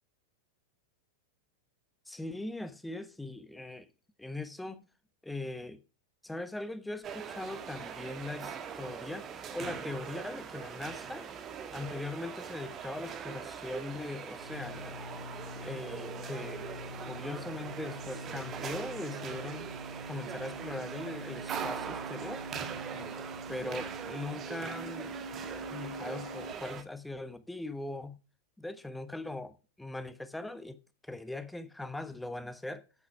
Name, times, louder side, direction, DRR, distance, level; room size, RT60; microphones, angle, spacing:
voice 1, 2.1-3.9 4.2-4.8 5.2-5.8 6.2-11.3 11.7-15.0 15.6-16.7 17.0-19.7 20.1-22.4 22.9-23.1 23.5-25.2 25.6-28.2 28.6-32.8, left 2 dB, 5° left, 1.1 m, -40 dB
sound 1, 7.0-26.8, right 7 dB, 30° right, 1.4 m, -42 dB
sound 2, 13.7-26.5, equal, 90° left, 1.0 m, -45 dB
8.5 x 8.5 x 5.9 m
figure-of-eight pair, 90°, 0 cm